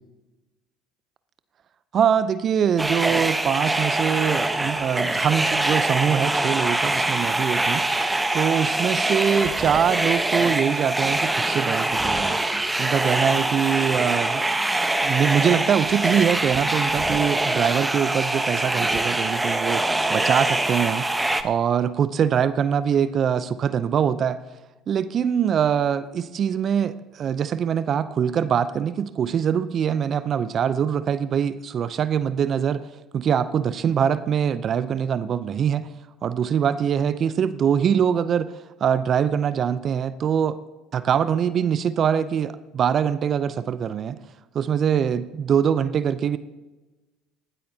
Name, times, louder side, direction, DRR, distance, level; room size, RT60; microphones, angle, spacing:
voice 1, 1.9-7.8 8.3-12.4 12.8-14.5 15.0-19.8 20.1-21.1 21.4-24.4 24.9-32.9 33.1-35.9 36.2-38.5 38.8-40.6 40.9-44.2 44.5-46.4, right 8 dB, 45° right, 14 dB, 0.6 m, -23 dB
sound 1, 2.8-21.4, right 2 dB, 10° right, 1.0 m, -24 dB
19.0 x 13.0 x 2.8 m, 1.1 s
hypercardioid pair, 65°, 0 cm